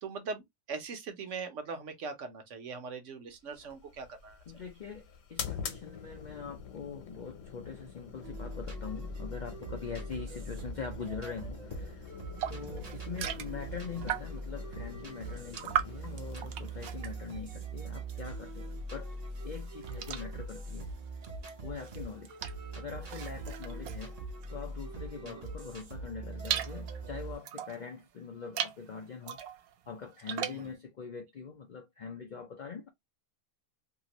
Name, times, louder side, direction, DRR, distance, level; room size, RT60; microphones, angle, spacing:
voice 1, 0.0-4.4 25.2-25.4 30.5-30.7, right 4 dB, 65° right, 1.0 m, -41 dB
sound 1, 3.5-18.8, left 7 dB, 70° left, 1.1 m, -46 dB
voice 2, 4.5-12.2 12.5-19.2 19.4-20.9 21.6-22.4 22.7-24.2 24.5-29.4 29.9-32.9, left 6 dB, 85° left, 0.4 m, -43 dB
sound 2, 8.2-27.4, right 2 dB, 40° right, 0.6 m, -42 dB
sound 3, 12.4-14.5 14.9-18.4 18.7-25.0 25.5-27.9 28.4-28.8 29.2-30.7, right 10 dB, 90° right, 1.0 m, -39 dB
2.9 x 2.5 x 2.8 m
omnidirectional pair, 1.5 m